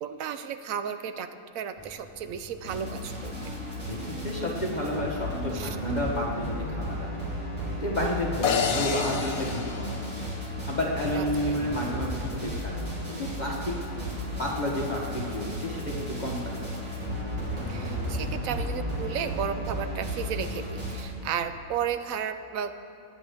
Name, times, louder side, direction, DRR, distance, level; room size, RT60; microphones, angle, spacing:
voice 1, 0.0-1.3 1.5-3.5 5.5-5.8 11.1-11.6 17.7-22.7, right 8 dB, 75° right, 9 dB, 1.1 m, -33 dB
sound 1, 1.8-21.6, equal, 15° right, 0.8 m, -49 dB
sound 2, 2.6-21.0, equal, 55° right, 3.1 m, -34 dB
voice 2, 3.9-7.2 7.7-10.1 10.7-12.7 13.1-13.8 14.0-16.8, left 1 dB, 35° left, -3 dB, 1.3 m, -31 dB
sound 3, 8.4-10.8, left 6 dB, 85° left, 1.3 m, -29 dB
24.0 x 9.8 x 3.5 m, 2.7 s
omnidirectional pair, 1.5 m